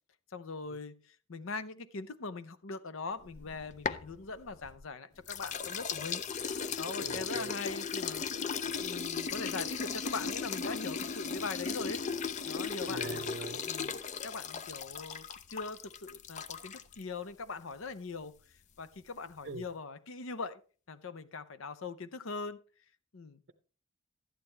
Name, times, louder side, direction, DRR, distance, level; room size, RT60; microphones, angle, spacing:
voice 1, 0.3-8.2 8.8-12.0 12.5-13.3 13.6-18.3 18.8-20.6 20.9-22.6 23.1-23.4, left 4 dB, 70° left, 14 dB, 0.7 m, -41 dB
sound 1, 3.3-4.9 5.3-17.0, left 6 dB, 35° left, 0.4 m, -37 dB
voice 2, 7.0-7.6 12.9-13.6 19.4-19.7, right 3 dB, 55° right, 6 dB, 0.6 m, -42 dB
12.0 x 9.0 x 3.3 m, 0.38 s
head